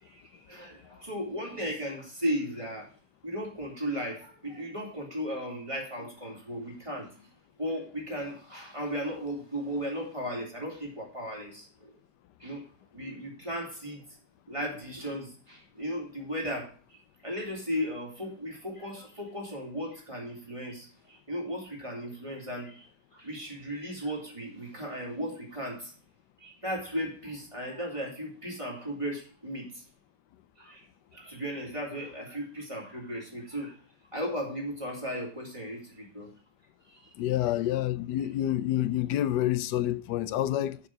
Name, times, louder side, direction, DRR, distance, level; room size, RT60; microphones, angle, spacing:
voice 1, 0.0-2.9 3.2-7.2 7.6-11.9 12.4-12.7 12.9-14.0 14.5-25.9 26.4-29.8 30.6-30.9 31.1-33.8 34.1-36.3 36.9-37.1, equal, 20° right, 3.7 m, -36 dB
voice 2, 37.2-40.8, left 13 dB, 85° left, 1.2 m, -28 dB
6.9 x 6.9 x 7.6 m
omnidirectional pair, 1.8 m